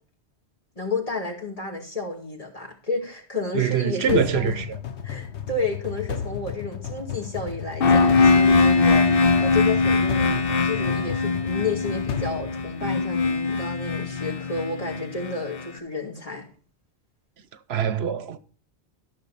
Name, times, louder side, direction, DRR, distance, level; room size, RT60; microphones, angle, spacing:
voice 1, 0.8-4.5 5.0-16.5, left 3 dB, 35° left, 2.3 m, -31 dB
voice 2, 3.5-4.5 17.7-18.4, right 8 dB, 70° right, 0.9 m, -23 dB
sound 1, 4.1-13.3, left 8 dB, 80° left, 1.2 m, -34 dB
sound 2, 7.8-15.6, left 4 dB, 60° left, 1.0 m, -21 dB
13.5 x 6.4 x 4.1 m
omnidirectional pair, 1.1 m